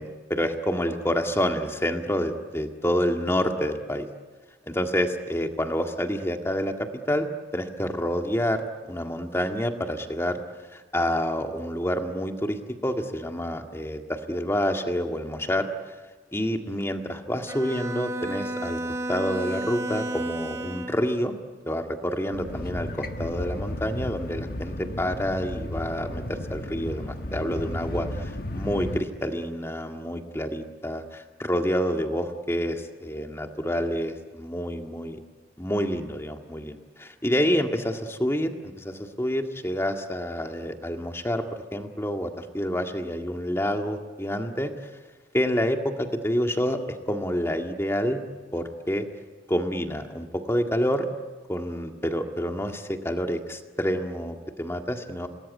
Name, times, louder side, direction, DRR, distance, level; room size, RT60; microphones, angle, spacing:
voice 1, 0.0-4.1 4.7-7.3 7.5-10.4 10.7-15.7 16.3-21.3 21.7-35.2 35.6-41.4 41.7-44.9 45.3-46.8 47.1-48.2 48.5-49.0 49.5-51.1 51.5-55.3, equal, 15° left, 5 dB, 1.9 m, -28 dB
Bowed string instrument, 17.5-21.1, right 1 dB, 15° right, 3.4 m, -32 dB
sound 1, 22.3-29.0, left 1 dB, 55° left, 1.4 m, -34 dB
27.5 x 20.0 x 9.5 m, 1.3 s
head